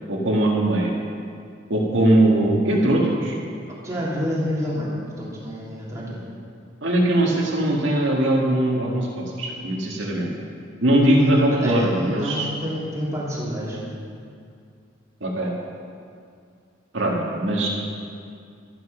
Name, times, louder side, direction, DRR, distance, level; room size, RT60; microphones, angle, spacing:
voice 1, 0.1-0.9 1.7-3.4 6.8-10.3 10.8-12.5 15.2-15.5 16.9-17.7, right 1 dB, 70° right, -3 dB, 1.9 m, -20 dB
voice 2, 3.8-6.2 11.2-13.8, equal, 15° right, -7 dB, 3.1 m, -29 dB
12.5 x 11.5 x 5.8 m, 2.3 s
head